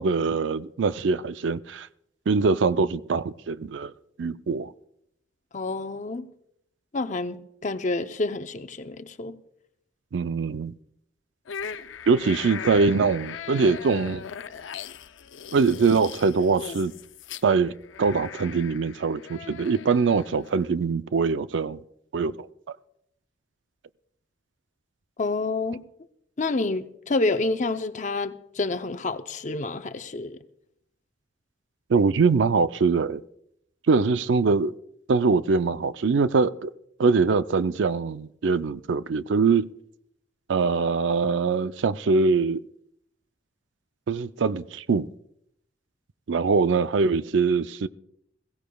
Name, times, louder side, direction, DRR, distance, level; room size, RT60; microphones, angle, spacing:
voice 1, 0.0-1.9 2.3-3.9 4.2-4.7 10.1-10.7 12.1-14.2 15.5-16.9 17.4-17.7 18.0-21.8 22.1-22.4 31.9-33.2 33.9-34.7 35.1-36.7 37.0-39.7 40.5-42.6 44.1-45.1 46.3-47.9, right 4 dB, 75° right, 0.4 m, -23 dB
voice 2, 5.5-6.2 6.9-9.4 25.2-25.8 26.4-30.4, left 3 dB, 40° left, 0.6 m, -28 dB
sound 1, 11.5-20.6, left 7 dB, 90° left, 0.6 m, -39 dB
22.0 x 16.0 x 2.3 m
head